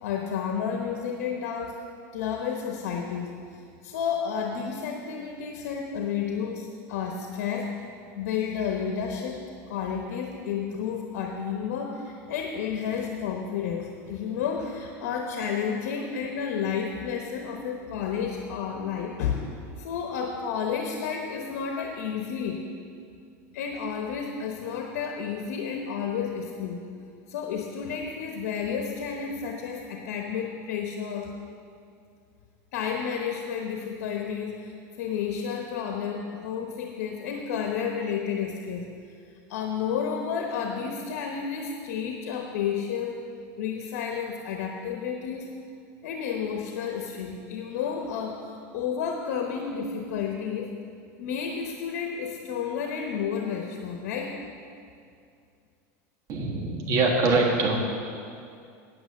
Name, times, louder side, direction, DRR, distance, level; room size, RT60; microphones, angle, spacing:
voice 1, 0.0-1.8 2.1-3.4 3.8-7.7 8.2-19.4 19.8-22.6 23.5-26.9 27.3-31.3 32.7-38.9 39.5-43.2 43.6-45.5 46.0-50.7 51.2-54.4, left 7 dB, 80° left, 3 dB, 1.0 m, -31 dB
voice 2, 56.3-57.8, right 3 dB, 40° right, 0 dB, 1.6 m, -23 dB
9.0 x 8.8 x 6.4 m, 2.4 s
supercardioid pair, 145°, 8 cm